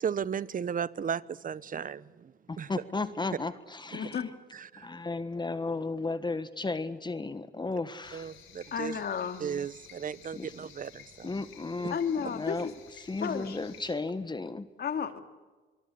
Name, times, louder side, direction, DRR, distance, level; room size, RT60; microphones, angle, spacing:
voice 1, 0.0-2.7 4.5-4.9 8.1-9.0 9.4-11.3, right 7 dB, 45° right, 0.9 m, -35 dB
voice 2, 2.5-4.2 4.8-8.3 10.4-10.5 11.2-12.7 13.0-14.7, left 3 dB, 20° left, 1.5 m, -34 dB
voice 3, 3.9-4.3 8.7-9.4 11.9-12.6 13.2-13.6 14.8-15.2, left 7 dB, 55° left, 2.4 m, -32 dB
sound 1, 8.0-14.0, left 9 dB, 85° left, 4.4 m, -54 dB
25.0 x 22.5 x 8.4 m
cardioid pair, 90°, 20 cm